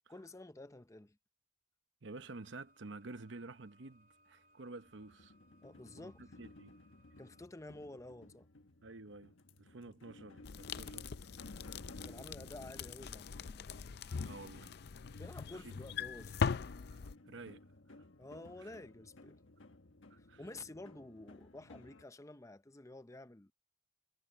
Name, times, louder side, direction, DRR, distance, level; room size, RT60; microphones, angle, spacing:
voice 1, 0.1-1.2 5.6-6.4 7.2-8.5 9.8-9.9 12.0-13.7 15.2-16.5 18.2-19.4 20.2-23.5, left 2 dB, 15° left, 0.6 m, -51 dB
voice 2, 2.0-5.3 6.0-6.8 8.8-11.1 12.0-12.1 14.2-14.7 15.5-15.7 16.9-17.6 18.6-18.7 20.1-20.4, right 3 dB, 70° right, 0.9 m, -51 dB
sound 1, 2.2-7.5, equal, 45° right, 2.5 m, -70 dB
sound 2, 4.8-22.0, left 2 dB, 85° left, 1.4 m, -57 dB
sound 3, 10.4-17.1, left 5 dB, 55° left, 0.5 m, -41 dB
head